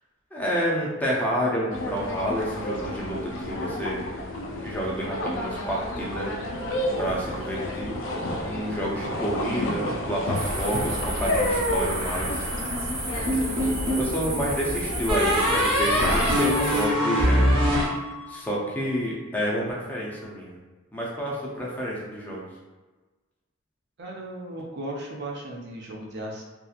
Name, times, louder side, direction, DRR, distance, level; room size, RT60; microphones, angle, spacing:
voice 1, 0.3-3.2 3.5-4.2 4.5-6.3 7.0-12.5 13.9-17.6 18.3-20.5 20.9-22.4, equal, 10° left, -5 dB, 0.4 m, -29 dB
sound 1, 1.7-16.1, left 1 dB, 65° left, 0.4 m, -31 dB
sound 2, 10.3-16.9, right 1 dB, 80° right, 0.9 m, -32 dB
sound 3, 13.3-14.1 15.1-18.6, equal, 25° right, 0.8 m, -23 dB
voice 2, 24.0-26.4, right 1 dB, 55° right, -1 dB, 0.5 m, -36 dB
2.8 x 2.3 x 2.4 m, 1.3 s
head